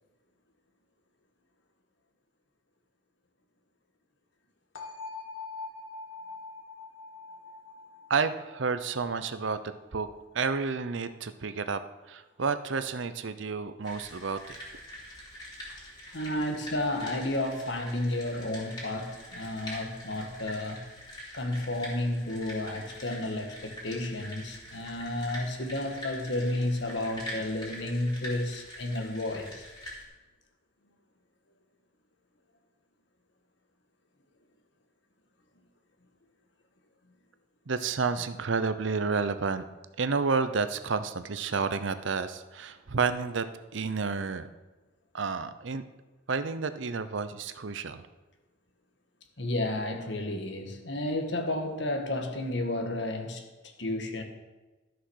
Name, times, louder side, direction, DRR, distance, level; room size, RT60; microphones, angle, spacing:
sound 1, 4.8-10.6, left 3 dB, 85° left, 2.0 m, -44 dB
voice 1, 8.1-9.6 9.9-10.1 10.3-14.6 37.7-39.7 40.0-43.5 43.7-44.5 45.1-45.8 46.3-48.1, right 5 dB, 70° right, 11 dB, 0.6 m, -30 dB
sound 2, 13.8-30.0, equal, 20° left, 3.6 m, -44 dB
voice 2, 16.1-20.8 21.3-29.7 49.4-53.5 53.8-54.2, left 1 dB, 60° left, 5 dB, 1.6 m, -32 dB
13.0 x 6.0 x 6.4 m, 1.2 s
head